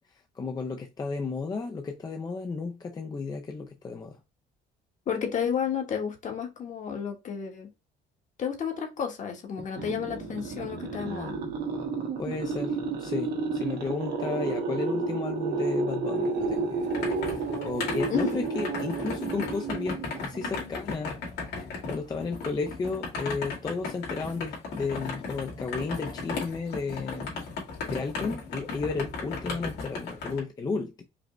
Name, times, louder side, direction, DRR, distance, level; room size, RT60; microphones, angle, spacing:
voice 1, 0.1-4.2 12.2-16.9 17.3-21.2 21.6-27.4 27.9-31.0, left 4 dB, 25° left, 0.5 m, -33 dB
voice 2, 5.1-7.7 8.4-11.4 18.1-18.3, left 7 dB, 45° left, 1.2 m, -31 dB
sound 1, 9.6-20.7, right 4 dB, 70° right, 1.2 m, -31 dB
sound 2, 16.4-30.4, left 4 dB, 75° left, 2.0 m, -36 dB
5.1 x 2.1 x 3.0 m
cardioid pair, 110°, 17 cm